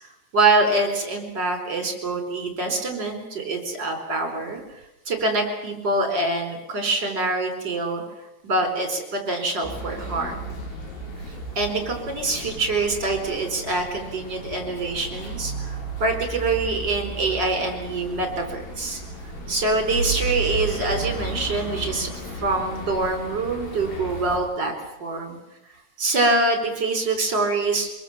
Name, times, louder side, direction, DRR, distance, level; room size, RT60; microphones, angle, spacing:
voice 1, 0.3-4.6 5.1-8.0 8.4-10.5 11.5-19.0 19.5-22.1 22.4-24.7 25.0-25.4 26.0-27.9, right 2 dB, 25° right, 4 dB, 4.7 m, -25 dB
sound 1, 9.6-24.4, right 2 dB, 65° left, 6.7 m, -34 dB
24.5 x 22.5 x 7.5 m, 0.93 s
omnidirectional pair, 4.6 m